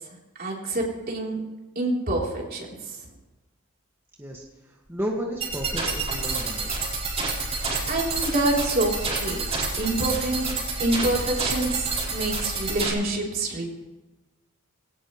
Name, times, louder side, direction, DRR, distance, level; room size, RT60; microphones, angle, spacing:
voice 1, 0.4-1.4 1.8-2.7 7.9-9.5 9.8-10.5 10.8-11.9 12.1-13.7, right 2 dB, 45° right, -2 dB, 3.8 m, -26 dB
voice 2, 4.9-6.9, equal, 10° right, -2 dB, 1.9 m, -32 dB
sound 1, 5.4-12.9, right 3 dB, 30° right, 4.6 m, -28 dB
21.0 x 18.0 x 3.2 m, 1.1 s
head